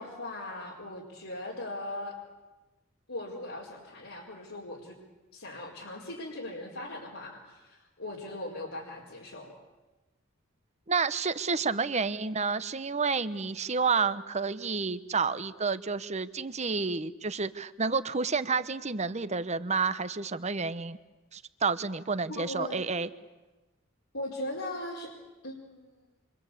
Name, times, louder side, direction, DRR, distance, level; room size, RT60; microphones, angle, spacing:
voice 1, 0.0-2.1 3.1-5.0 5.3-9.5 11.8-12.0 22.3-22.8 24.1-25.1 25.4-26.0, left 1 dB, 80° left, -3 dB, 4.6 m, -39 dB
voice 2, 10.9-21.0 21.3-23.1, right 4 dB, 35° right, 13 dB, 1.0 m, -30 dB
28.0 x 25.0 x 8.5 m, 1.1 s
head